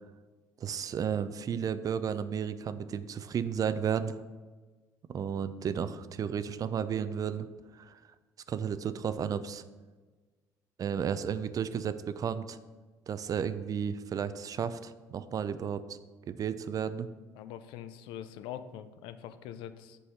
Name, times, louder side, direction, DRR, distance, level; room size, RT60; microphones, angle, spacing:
voice 1, 0.6-4.1 5.1-7.5 7.7-8.0 8.5-9.6 10.8-12.6 13.1-15.8 16.3-17.1, right 7 dB, 40° right, 13 dB, 0.4 m, -33 dB
voice 2, 17.3-20.0, left 10 dB, 65° left, 11 dB, 0.4 m, -43 dB
5.5 x 4.1 x 5.0 m, 1.3 s
hypercardioid pair, 60°, 9 cm